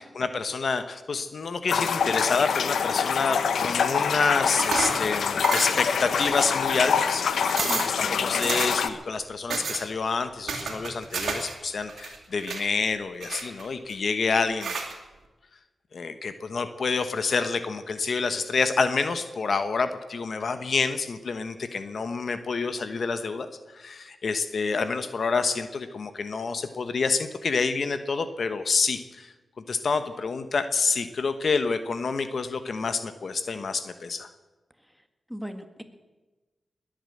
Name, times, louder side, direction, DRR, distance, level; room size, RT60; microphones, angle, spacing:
voice 1, 0.0-14.8 15.9-23.5 23.7-29.3 29.7-34.3, left 4 dB, 65° left, 10 dB, 1.1 m, -28 dB
sound 1, 1.7-8.9, left 6 dB, 85° left, 0.9 m, -25 dB
sound 2, 4.6-5.1 5.4-5.9 6.2-6.8 7.2-7.3 7.5-8.0 8.4-8.9 9.5-9.8 10.5-11.5 11.8-12.6 13.2-13.9 14.6-14.9, right 5 dB, 85° right, 2.5 m, -31 dB
voice 2, 7.7-8.5 35.3-35.8, equal, ahead, 7 dB, 1.8 m, -38 dB
20.5 x 8.9 x 7.9 m, 1.2 s
cardioid pair, 65°, 0 cm